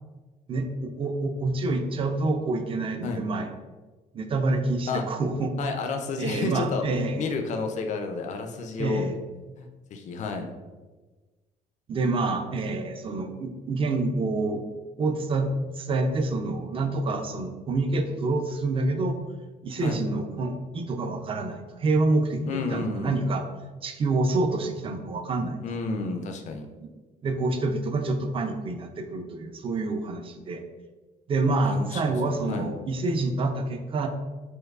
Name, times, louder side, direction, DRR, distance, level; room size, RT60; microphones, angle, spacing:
voice 1, 0.5-3.5 4.1-5.5 6.2-7.2 8.8-9.2 11.9-14.6 15.0-15.5 15.8-19.2 19.6-23.4 23.8-25.6 26.8-26.9 27.2-30.6 31.3-34.1, right 2 dB, 30° right, 5 dB, 0.4 m, -27 dB
voice 2, 5.6-6.8 7.2-9.0 9.6-10.5 19.8-20.0 22.5-23.2 25.6-26.7 31.6-32.1 32.5-32.7, left 4 dB, 45° left, 4 dB, 0.4 m, -31 dB
4.4 x 2.3 x 2.3 m, 1.3 s
cardioid pair, 110°, 17 cm